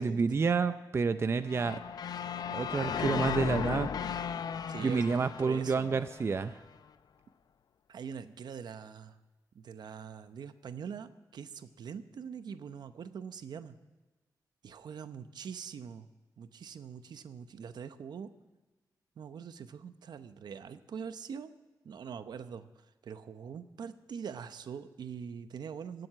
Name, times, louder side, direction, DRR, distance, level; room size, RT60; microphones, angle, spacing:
voice 1, 0.0-1.8 2.5-3.9 4.8-6.6, right 5 dB, 35° right, 11 dB, 0.5 m, -29 dB
sound 1, 1.5-6.5, left 8 dB, 65° left, 0.5 m, -36 dB
voice 2, 4.7-6.0 7.9-9.2 9.5-13.8 14.6-16.1 16.4-18.3 19.2-21.5 21.8-26.1, right 7 dB, 75° right, 11 dB, 0.8 m, -43 dB
17.0 x 7.8 x 8.8 m, 1.2 s
wide cardioid pair, 135°, 7 cm